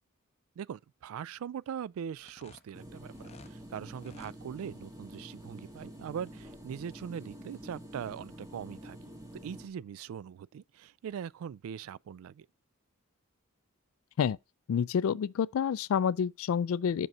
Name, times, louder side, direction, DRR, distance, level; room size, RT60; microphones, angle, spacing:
voice 1, 0.6-9.1 9.4-12.5, right 8 dB, 70° right, 0.3 m, -41 dB
sound 1, 2.2-3.6 3.9-4.4, left 3 dB, 30° left, 0.6 m, -54 dB
sound 2, 2.7-9.7, equal, 15° right, 1.5 m, -48 dB
voice 2, 14.7-17.1, left 7 dB, 70° left, 0.3 m, -28 dB
6.2 x 5.4 x 5.3 m
head